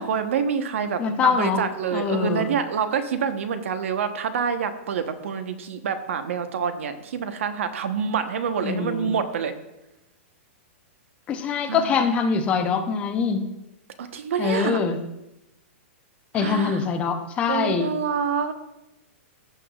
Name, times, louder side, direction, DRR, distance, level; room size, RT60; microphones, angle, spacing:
voice 1, 0.0-9.5 11.7-12.0 14.0-14.8 16.3-16.9 17.5-18.5, right 6 dB, 70° right, 8 dB, 1.0 m, -27 dB
voice 2, 1.0-1.6 1.9-2.5 8.6-9.1 11.3-13.4 14.4-15.0 16.3-17.9, left 5 dB, 15° left, 6 dB, 0.6 m, -24 dB
15.0 x 7.0 x 2.4 m, 0.93 s
supercardioid pair, 165°, 7 cm